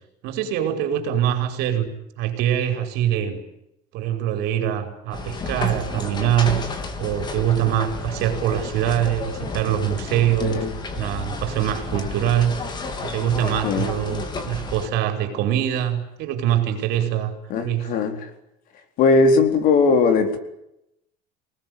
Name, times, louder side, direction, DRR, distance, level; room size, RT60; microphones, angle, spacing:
voice 1, 0.2-1.9 2.2-3.4 3.9-6.6 7.0-10.6 11.0-12.6 13.0-17.3 17.6-17.9, right 11 dB, 60° right, 7 dB, 5.3 m, -23 dB
sound 1, 5.1-14.9, left 3 dB, 25° left, 3.4 m, -31 dB
voice 2, 10.4-10.7 13.6-13.9 17.5-18.3 19.0-20.5, left 4 dB, 50° left, 8 dB, 4.2 m, -19 dB
28.0 x 19.5 x 9.6 m, 0.83 s
cardioid pair, 175°, 19 cm